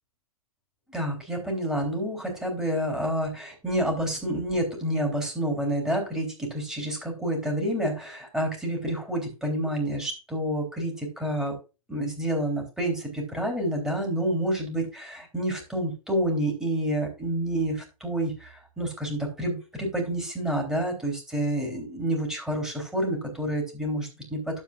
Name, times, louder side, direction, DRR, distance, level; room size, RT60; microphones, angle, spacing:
voice 1, 0.9-11.6 11.9-24.6, right 1 dB, 5° right, 0 dB, 3.4 m, -29 dB
12.0 x 7.3 x 2.5 m, 0.29 s
hypercardioid pair, 135°, 18 cm